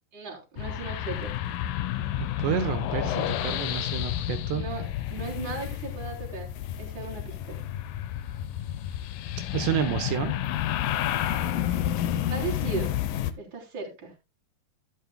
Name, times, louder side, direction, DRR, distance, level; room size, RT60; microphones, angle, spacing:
voice 1, 0.1-1.3 4.5-7.6 12.3-12.9 13.4-14.1, right 4 dB, 25° right, -2 dB, 3.9 m, -37 dB
sound 1, 0.6-13.3, left 11 dB, 75° left, 2.1 m, -30 dB
voice 2, 2.2-4.6 9.5-10.4, right 10 dB, 80° right, 7 dB, 3.2 m, -29 dB
12.5 x 11.0 x 2.2 m, 0.25 s
omnidirectional pair, 4.9 m